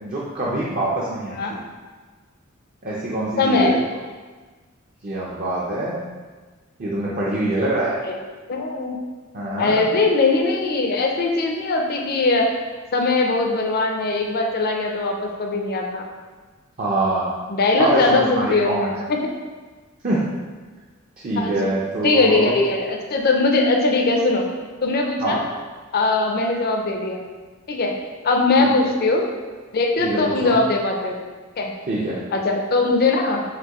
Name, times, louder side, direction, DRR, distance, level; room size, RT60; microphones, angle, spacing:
voice 1, 0.0-1.6 2.8-3.8 5.0-6.0 6.8-8.0 9.3-9.9 16.8-17.3 17.8-18.9 20.0-20.2 21.2-22.6 25.2-25.4 28.6-28.7 30.0-30.6 31.9-32.2, right 2 dB, 45° right, -5 dB, 0.6 m, -24 dB
voice 2, 3.4-3.8 8.0-8.2 8.5-9.0 9.6-12.5 12.9-16.1 17.5-19.2 21.4-21.7 22.0-24.5 24.8-25.4 25.9-27.2 27.7-27.9 28.2-29.2 29.7-31.1 31.6-31.7 32.3-33.4, left 3 dB, 50° left, 1 dB, 0.5 m, -20 dB
5.9 x 2.7 x 3.0 m, 1.4 s
head